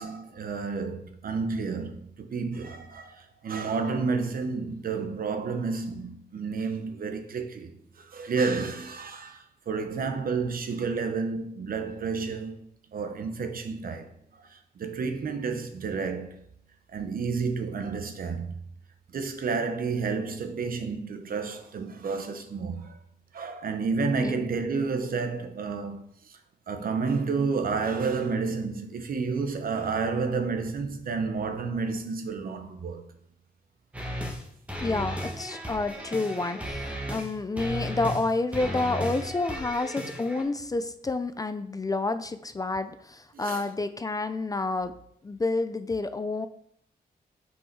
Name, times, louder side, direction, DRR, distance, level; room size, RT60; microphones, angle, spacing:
voice 1, 0.0-14.1 14.4-16.4 16.9-18.6 19.1-23.0 23.3-26.4 26.7-33.1 43.3-43.7, right 4 dB, 65° right, 1.0 m, -30 dB
sound 1, 33.9-34.4 34.7-37.3 37.6-38.2 38.5-40.4, equal, 10° right, 1.5 m, -35 dB
voice 2, 34.8-44.9 45.2-46.5, left 3 dB, 20° left, 0.4 m, -29 dB
6.3 x 5.4 x 4.6 m
wide cardioid pair, 130°, 16 cm